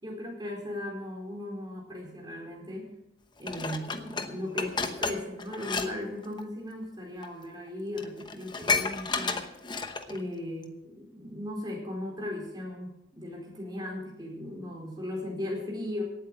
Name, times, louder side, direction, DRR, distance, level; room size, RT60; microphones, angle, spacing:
voice 1, 0.0-2.9 3.4-9.4 10.1-16.0, left 1 dB, 25° right, -1 dB, 4.5 m, -37 dB
Dishes pots and pans, 3.5-5.9 6.2-6.4 7.2-7.3 7.7-7.8 8.0-10.2 10.6-10.7, left 4 dB, 25° left, 1.0 m, -31 dB
17.5 x 8.5 x 6.4 m, 0.88 s
head